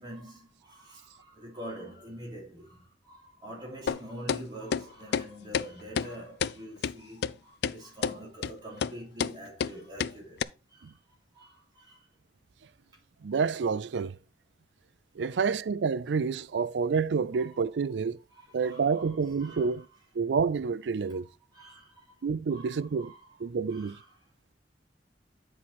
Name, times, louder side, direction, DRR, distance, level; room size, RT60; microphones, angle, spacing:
voice 1, 0.0-10.4 10.7-12.1 15.3-15.4 17.4-17.6 18.3-19.7 21.1-22.1 22.5-23.4 23.7-24.2, equal, 25° right, 3.4 m, -46 dB
sound 1, 3.9-4.0 4.3-4.4 4.7-4.8 5.1-5.3 5.5-5.7 6.0-6.1 6.4-6.5 6.8-6.9 7.2-7.3 7.6-7.8 8.0-8.2 8.4-8.5 8.8-8.9 9.2-9.3 9.6-9.7 10.0-10.1 10.4-10.5, left 7 dB, 65° left, 0.3 m, -28 dB
voice 2, 13.2-14.2 15.2-18.2 18.5-19.9 20.1-21.3 22.2-23.1 23.4-24.0, right 5 dB, 85° right, 0.4 m, -28 dB
9.5 x 4.4 x 4.2 m
head